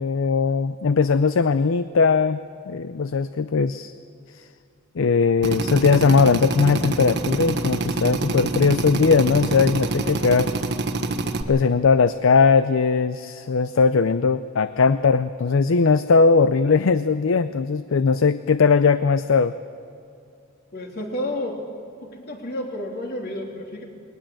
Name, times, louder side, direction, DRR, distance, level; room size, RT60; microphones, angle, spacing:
voice 1, 0.0-2.4 2.7-3.9 5.0-10.5 11.5-19.5, left 5 dB, 70° left, 13 dB, 0.5 m, -19 dB
Drill, 5.4-11.4, right 2 dB, 55° right, 1.2 m, -26 dB
voice 2, 20.7-21.6 22.0-23.8, left 1 dB, 50° left, 1 dB, 3.2 m, -31 dB
20.5 x 19.0 x 7.7 m, 2.4 s
head